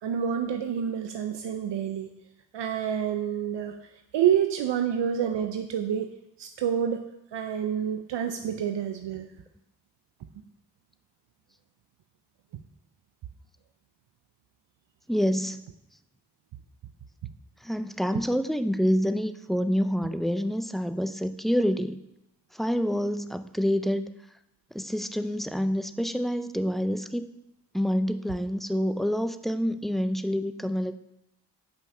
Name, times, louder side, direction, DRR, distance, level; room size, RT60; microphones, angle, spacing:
voice 1, 0.0-2.1 2.5-3.8 4.1-6.1 6.4-9.3 12.5-12.6, right 9 dB, 75° right, 6 dB, 0.7 m, -28 dB
voice 2, 15.1-15.6 17.6-22.0 22.5-24.1 24.7-27.3 27.7-30.9, equal, ahead, 10 dB, 0.6 m, -27 dB
8.1 x 5.8 x 5.6 m, 0.87 s
supercardioid pair, 40°, 43 cm